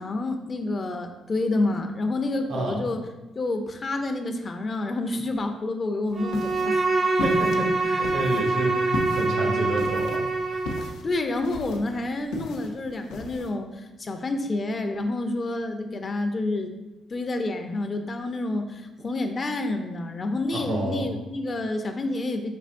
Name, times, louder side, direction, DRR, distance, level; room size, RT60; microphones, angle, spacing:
voice 1, 0.0-3.0 3.4-6.8 10.8-16.7 17.1-22.5, left 2 dB, 40° left, 5 dB, 0.5 m, -28 dB
sound 1, 6.1-13.5, left 3 dB, 90° left, 0.5 m, -37 dB
Bowed string instrument, 6.1-11.0, right 3 dB, 40° right, 0.5 m, -25 dB
voice 2, 7.2-10.2 10.5-10.6 20.5-21.1, right 1 dB, 85° right, -2 dB, 1.3 m, -29 dB
5.4 x 2.8 x 2.5 m, 1.0 s
cardioid pair, 90°, 0 cm